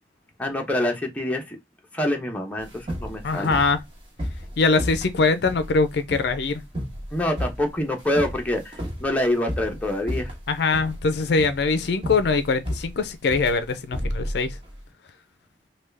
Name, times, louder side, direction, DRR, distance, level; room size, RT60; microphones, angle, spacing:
voice 1, 0.4-1.6 1.9-3.5 7.1-10.3, left 1 dB, 10° left, 0.7 m, -26 dB
sound 1, 2.6-14.8, equal, 30° right, 1.2 m, -33 dB
voice 2, 3.2-3.8 4.6-6.6 10.5-14.5, left 4 dB, 60° left, 0.4 m, -22 dB
3.4 x 2.3 x 3.2 m
head